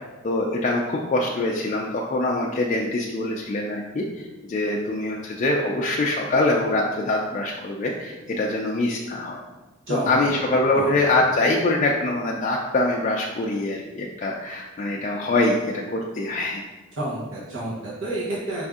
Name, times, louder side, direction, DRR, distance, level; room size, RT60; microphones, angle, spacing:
voice 1, 0.2-4.0 4.5-9.4 9.9-16.6, left 2 dB, 35° left, -2 dB, 0.3 m, -24 dB
voice 2, 9.9-10.4 10.7-10.9 17.0-18.6, right 1 dB, 85° right, -7 dB, 1.0 m, -29 dB
4.8 x 2.6 x 3.5 m, 1.2 s
head